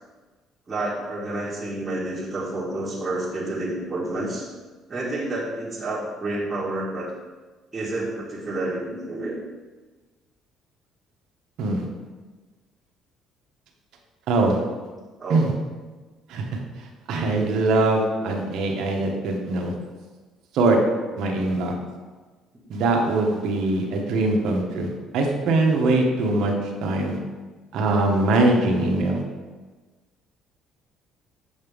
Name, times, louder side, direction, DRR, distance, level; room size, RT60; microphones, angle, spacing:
voice 1, 0.7-4.4 4.9-7.1 7.7-9.4 15.2-15.5 18.2-18.3, right 2 dB, 25° right, -7 dB, 1.8 m, -29 dB
voice 2, 14.3-14.6 15.3-15.5 16.3-16.5 16.8-19.7 20.5-20.8 21.2-21.7 22.7-26.5 26.8-27.2 27.7-29.2, right 2 dB, 75° right, 1 dB, 1.2 m, -22 dB
7.2 x 5.3 x 3.6 m, 1.3 s
cardioid pair, 95°, 0 cm